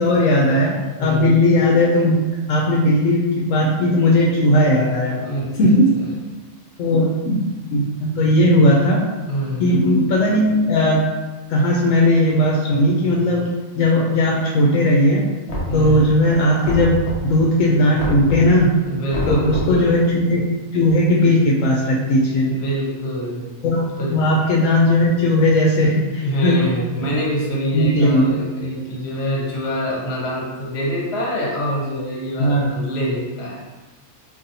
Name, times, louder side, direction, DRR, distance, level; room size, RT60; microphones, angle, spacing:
voice 1, 0.0-5.2 5.6-5.9 6.8-7.4 7.7-9.0 9.6-11.1 11.5-13.5 13.8-15.3 15.7-17.0 17.2-18.7 19.3-20.4 20.7-22.5 23.6-23.8 24.1-27.1 27.7-28.4 32.4-32.7, left 1 dB, 80° left, -3 dB, 0.9 m, -17 dB
voice 2, 1.0-1.4 5.2-5.7 9.3-9.8 15.7-16.1 18.8-19.9 22.5-23.4 24.0-24.1 26.2-33.7, equal, 60° left, -3 dB, 1.1 m, -25 dB
Knock, 15.5-16.2 16.6-17.4 18.0-18.6 19.1-19.8, equal, 40° left, 0.6 m, -26 dB
4.0 x 2.7 x 2.6 m, 1.2 s
omnidirectional pair, 1.3 m